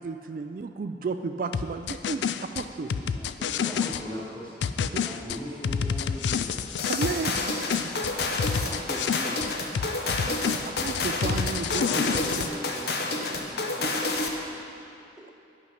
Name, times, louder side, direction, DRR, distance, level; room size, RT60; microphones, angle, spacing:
voice 1, 0.0-2.3 2.5-2.9 5.1-5.2 6.9-7.5 10.2-12.1 12.3-12.5, right 4 dB, 50° right, 7 dB, 0.3 m, -33 dB
sound 1, 1.5-4.0 4.6-7.4 7.7-9.5 9.7-12.5, left 7 dB, 80° left, 0.3 m, -29 dB
voice 2, 2.8-3.8 4.8-6.5 8.7-9.4 15.2-15.3, equal, 5° right, -6 dB, 1.1 m, -43 dB
voice 3, 3.8-4.7 5.2-6.6 11.7-14.3, equal, 30° left, -7 dB, 2.4 m, -39 dB
sound 2, 6.8-14.4, left 2 dB, 60° left, 0.8 m, -30 dB
10.5 x 5.9 x 5.7 m, 2.6 s
head